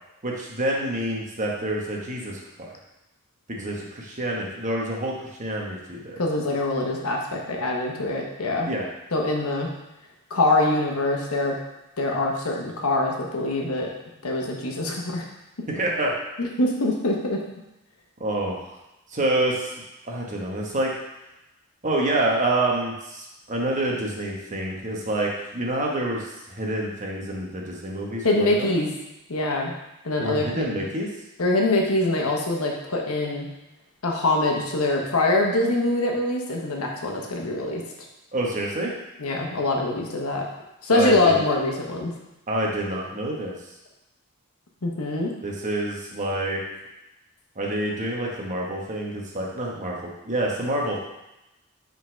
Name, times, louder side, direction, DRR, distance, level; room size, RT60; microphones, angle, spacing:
voice 1, 0.2-2.7 3.5-5.1 5.4-6.2 8.7-8.9 15.7-16.1 18.2-18.8 19.1-19.7 20.0-20.9 21.8-28.7 30.2-31.1 38.3-38.9 40.9-41.4 42.5-43.5 45.4-46.6 47.6-50.0 50.2-51.0, right 1 dB, 35° right, -2 dB, 1.1 m, -27 dB
voice 2, 6.2-8.7 9.1-9.7 10.3-11.5 12.0-13.9 14.2-15.2 16.4-17.4 28.2-28.9 29.3-29.7 30.0-30.9 31.4-33.5 34.0-37.8 39.2-40.4 40.8-42.1 44.8-45.3, left 2 dB, 80° left, 0 dB, 1.1 m, -24 dB
5.3 x 4.0 x 5.0 m, 0.94 s
head